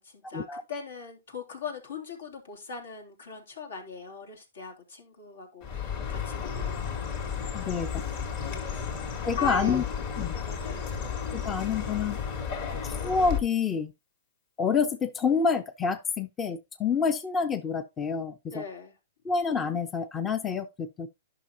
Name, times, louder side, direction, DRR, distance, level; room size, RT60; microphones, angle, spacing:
voice 1, 0.0-6.9 7.6-8.1 8.5-9.8 10.3-10.9 18.5-18.9, left 6 dB, 75° left, 3.1 m, -39 dB
Chirp tweet, 5.6-13.4, left 6 dB, 45° left, 2.5 m, -33 dB
voice 2, 7.5-7.9 9.3-9.8 10.2-10.3 11.3-12.2 12.8-13.9 14.6-18.6 19.2-21.1, left 5 dB, 15° left, 0.5 m, -28 dB
11.0 x 5.8 x 2.8 m
hypercardioid pair, 145°, 0 cm